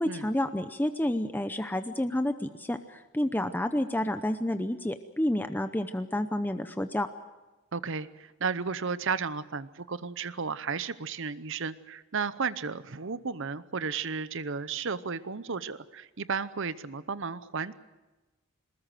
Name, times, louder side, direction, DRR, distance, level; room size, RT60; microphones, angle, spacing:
voice 1, 0.0-7.1, left 1 dB, 10° left, 9 dB, 0.7 m, -30 dB
voice 2, 7.7-17.7, right 5 dB, 60° right, 15 dB, 0.8 m, -33 dB
22.5 x 20.5 x 7.8 m, 1.1 s
head